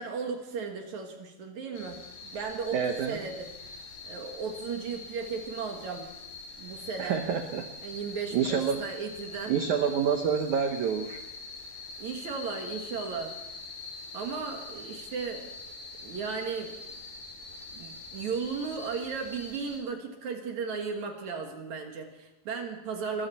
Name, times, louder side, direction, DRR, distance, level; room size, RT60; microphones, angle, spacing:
voice 1, 0.0-2.8 3.1-6.1 6.6-7.2 7.8-9.6 12.0-13.4 14.1-15.4 16.0-16.8 17.7-23.3, right 5 dB, 55° right, 4 dB, 2.4 m, -35 dB
sound 1, 1.7-19.8, left 3 dB, 70° left, 5.7 m, -44 dB
voice 2, 2.7-3.2 7.0-7.7 8.3-8.8 9.5-11.2, right 7 dB, 90° right, 6 dB, 1.7 m, -27 dB
23.0 x 14.5 x 4.2 m, 0.94 s
omnidirectional pair, 4.9 m